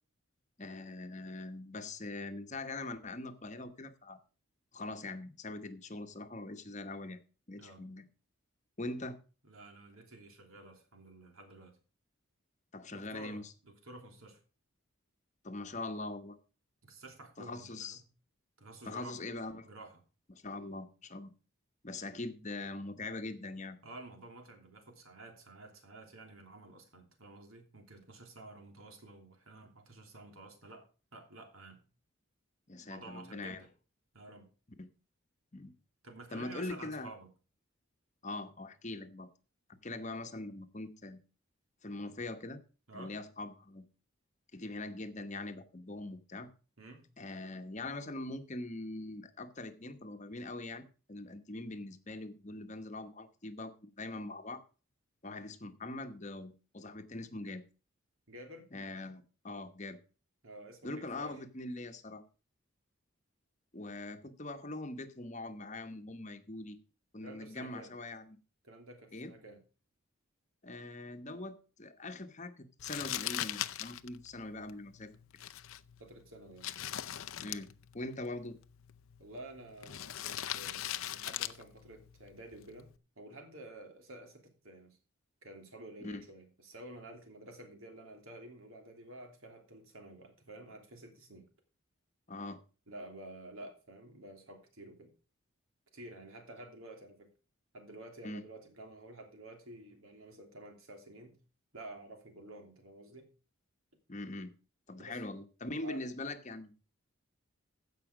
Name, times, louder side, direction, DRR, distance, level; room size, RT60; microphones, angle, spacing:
voice 1, 0.6-4.2 4.7-7.2 7.5-8.0 8.8-9.2 12.7-13.5 15.4-16.4 17.4-18.0 18.8-19.7 20.3-21.3 21.8-23.8 32.7-33.6 34.8-34.9 35.5-35.8 36.3-37.1 38.2-39.3 39.7-41.2 41.8-42.6 42.9-43.8 44.5-46.5 47.2-54.6 55.2-57.6 58.7-60.0 60.8-62.2 63.7-66.8 67.1-68.4 69.1-69.3 70.6-75.1 77.4-78.5 86.0-86.2 92.3-92.6 98.2-98.4 104.1-104.5 104.9-106.7, left 2 dB, 35° left, 1.0 m, -42 dB
voice 2, 9.5-11.8 12.9-14.4 16.8-18.1 18.6-19.2 19.6-20.0 23.8-30.9 31.1-31.8 32.8-33.7 34.1-34.5 36.0-37.3 42.9-43.2 46.8-47.1 58.3-58.7 60.4-61.4 67.2-67.9 68.6-69.6 76.0-76.8 79.2-85.0 85.4-91.5 92.9-95.1 95.9-97.3 97.7-101.4 101.7-103.3 105.0-105.2 105.8-106.0, right 2 dB, 80° right, 3.0 m, -51 dB
Crumpling crinkling, 72.8-83.0, left 12 dB, 75° left, 0.6 m, -42 dB
15.5 x 5.7 x 4.9 m
head